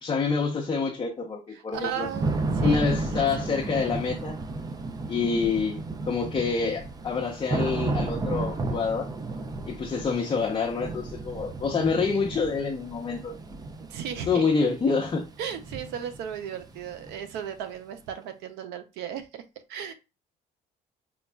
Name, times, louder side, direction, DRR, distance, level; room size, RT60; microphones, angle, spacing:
voice 1, 0.0-2.1 2.6-4.4 5.1-5.8 6.1-9.1 9.7-13.3 14.3-15.3, left 5 dB, 30° left, 0.7 m, -27 dB
voice 2, 1.5-3.5 13.8-14.7 15.4-19.4 19.7-19.9, right 8 dB, 90° right, 0.6 m, -36 dB
Thunder / Rain, 1.7-17.5, right 2 dB, 25° right, 0.4 m, -33 dB
5.1 x 2.3 x 2.2 m
cardioid pair, 110°, 17 cm